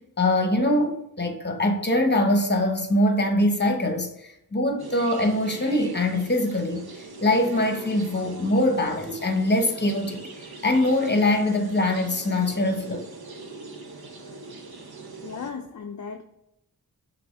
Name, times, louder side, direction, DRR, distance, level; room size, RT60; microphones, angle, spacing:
voice 1, 0.2-6.9 7.2-10.2 10.6-13.0, left 1 dB, 30° left, 0.9 m, -23 dB
sound 1, 4.8-15.5, right 2 dB, 80° right, 0.8 m, -42 dB
voice 2, 15.2-16.2, left 5 dB, 50° left, 0.5 m, -36 dB
6.1 x 2.7 x 3.2 m
wide cardioid pair, 45°, 37 cm